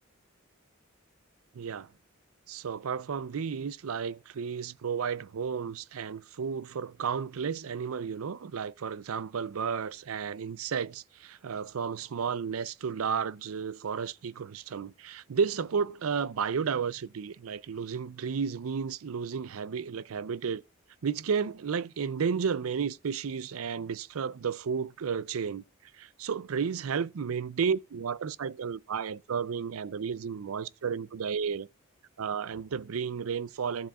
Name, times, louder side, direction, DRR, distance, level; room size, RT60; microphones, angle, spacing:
voice 1, 1.5-1.9 2.5-20.6 21.0-25.6 26.0-31.7 32.2-33.9, right 6 dB, 80° right, 0.5 m, -32 dB
14.0 x 7.3 x 2.4 m
head